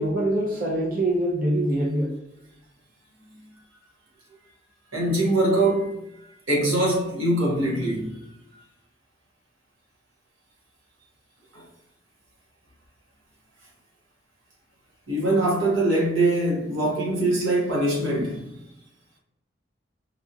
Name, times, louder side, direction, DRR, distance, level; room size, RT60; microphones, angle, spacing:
voice 1, 0.0-2.1, right 1 dB, 45° right, 0.5 m, -24 dB
voice 2, 4.9-6.0 6.5-8.2 11.5-11.6 15.1-18.5, right 1 dB, 85° right, 1.2 m, -23 dB
4.6 x 2.8 x 2.4 m
head